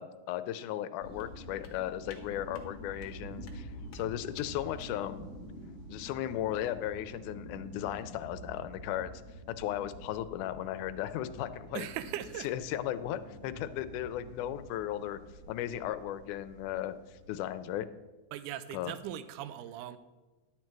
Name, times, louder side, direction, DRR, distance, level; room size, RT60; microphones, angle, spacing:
voice 1, 0.0-5.3 5.9-9.2 9.6-11.9 12.4-15.2 15.5-17.9 18.7-18.9, left 12 dB, 85° left, 12 dB, 2.0 m, -36 dB
sound 1, 1.0-5.1, left 5 dB, 55° left, 1.3 m, -54 dB
sound 2, 1.0-17.7, right 1 dB, 20° right, 2.4 m, -48 dB
voice 2, 11.7-12.5 18.3-20.0, right 11 dB, 85° right, 13 dB, 2.0 m, -39 dB
11.0 x 7.5 x 4.6 m, 1.2 s
omnidirectional pair, 3.6 m